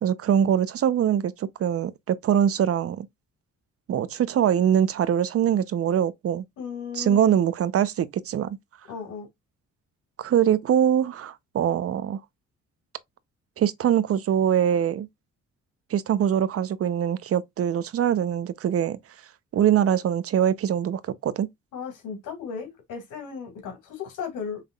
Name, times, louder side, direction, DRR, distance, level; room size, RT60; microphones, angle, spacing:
voice 1, 0.0-3.1 3.9-6.4 7.0-8.6 10.2-12.2 13.6-15.1 15.9-19.0 19.5-21.5, right 9 dB, 50° right, 0.6 m, -23 dB
voice 2, 6.6-7.4 8.9-9.3 21.7-24.6, left 6 dB, 90° left, 2.3 m, -35 dB
5.7 x 3.5 x 2.3 m
cardioid pair, 90°, 30 cm